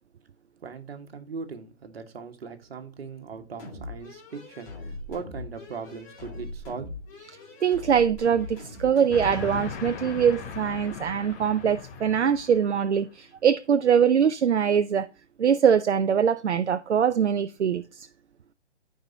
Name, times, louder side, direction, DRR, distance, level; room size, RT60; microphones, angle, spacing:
voice 1, 0.6-6.9, right 5 dB, 60° right, 1.6 m, -39 dB
sound 1, 3.6-9.8, left 2 dB, 30° left, 2.8 m, -41 dB
voice 2, 7.6-15.1 15.4-18.1, right 7 dB, 80° right, 0.6 m, -23 dB
Train, 9.1-13.0, left 6 dB, 15° left, 0.5 m, -38 dB
14.0 x 4.8 x 2.7 m
figure-of-eight pair, 135°, 34 cm